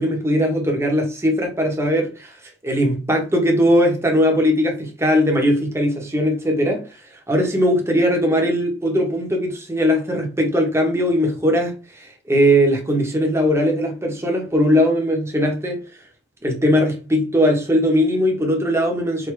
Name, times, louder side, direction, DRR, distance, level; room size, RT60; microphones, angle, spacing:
voice 1, 0.0-2.3 2.6-6.8 7.3-15.8 16.4-19.3, equal, 15° right, 1.0 m, -19 dB
4.8 x 2.8 x 3.2 m
head